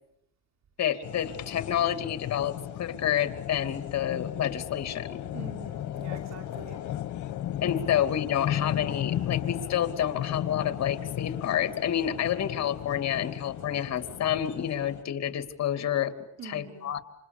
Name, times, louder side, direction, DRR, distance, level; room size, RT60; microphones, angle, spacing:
voice 1, 0.8-5.2 7.6-16.1 16.4-17.0, left 10 dB, 60° left, 9 dB, 2.7 m, -29 dB
sound 1, 1.0-15.0, left 11 dB, 75° left, 1.6 m, -35 dB
voice 2, 5.3-6.8 7.9-8.2 16.4-16.9, right 6 dB, 60° right, 4 dB, 3.6 m, -45 dB
28.5 x 27.0 x 6.9 m, 0.77 s
cardioid pair, 90°, 30 cm